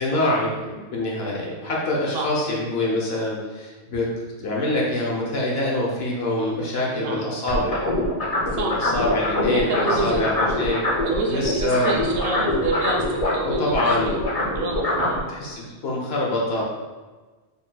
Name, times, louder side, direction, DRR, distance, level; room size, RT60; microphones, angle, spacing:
voice 1, 0.0-4.1 4.4-7.8 8.5-10.8 11.3-11.9 13.4-14.1 15.3-16.6, left 1 dB, 65° left, -3 dB, 1.1 m, -25 dB
voice 2, 6.9-7.2 8.5-8.9 9.7-10.3 11.0-14.2 14.5-15.2, right 3 dB, 65° right, 0 dB, 0.8 m, -28 dB
sound 1, 7.5-11.2 11.4-15.2, left 1 dB, 35° left, 0.8 m, -24 dB
4.2 x 3.7 x 2.2 m, 1.3 s
omnidirectional pair, 1.2 m